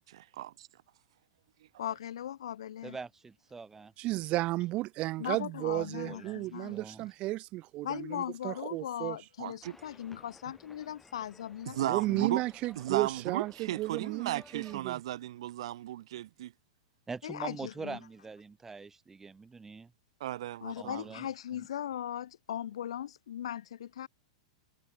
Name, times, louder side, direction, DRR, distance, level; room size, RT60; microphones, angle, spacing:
voice 1, 0.1-0.5 9.4-9.7 11.7-12.4 12.8-16.5 20.2-21.0, right 13 dB, 70° right, 2.3 m, -35 dB
voice 2, 1.8-3.0 5.2-6.8 7.8-12.4 17.2-18.0 20.6-24.1, left 10 dB, 80° left, 2.4 m, -39 dB
voice 3, 2.8-3.9 5.7-7.1 17.1-19.9 20.8-21.3 21.6-21.7, right 4 dB, 10° right, 4.4 m, -44 dB
voice 4, 4.0-9.2 11.8-15.0, right 18 dB, 40° right, 1.6 m, -33 dB
sound 1, 9.6-14.8, left 2 dB, 5° left, 4.8 m, -57 dB
hypercardioid pair, 125°, 3 cm